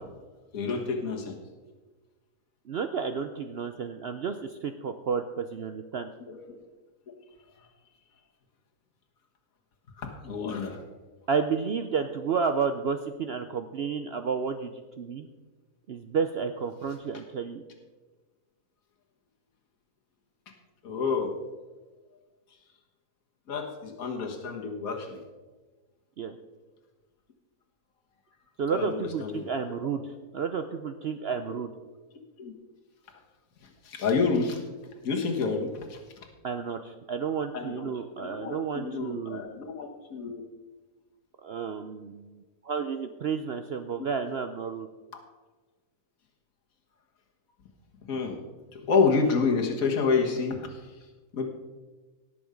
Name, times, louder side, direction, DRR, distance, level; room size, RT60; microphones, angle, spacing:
voice 1, 0.5-1.4 7.1-7.2 10.0-10.8 20.8-21.3 23.5-25.2 28.7-29.5 32.4-32.5 33.8-34.6 35.0-36.0 37.5-37.9 38.2-40.4 48.1-48.4 48.7-50.6 51.3-51.5, left 4 dB, 60° left, 1 dB, 1.9 m, -28 dB
voice 2, 2.7-6.1 11.3-14.7 15.0-15.3 15.9-17.6 26.2-26.4 28.6-31.7 36.4-39.5 41.4-44.9, right 6 dB, 70° right, 8 dB, 0.6 m, -31 dB
17.5 x 7.1 x 5.1 m, 1.3 s
omnidirectional pair, 1.7 m